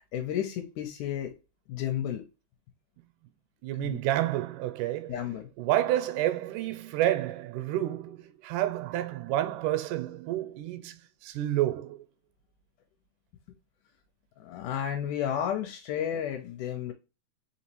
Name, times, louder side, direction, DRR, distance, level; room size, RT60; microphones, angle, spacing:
voice 1, 0.1-1.3 1.7-2.2 3.8-4.0 5.1-5.5 14.4-16.9, left 9 dB, 85° left, 2.1 m, -32 dB
voice 2, 3.6-5.1 5.6-12.0, right 13 dB, 85° right, 2.1 m, -29 dB
4.8 x 3.0 x 2.9 m
omnidirectional pair, 3.6 m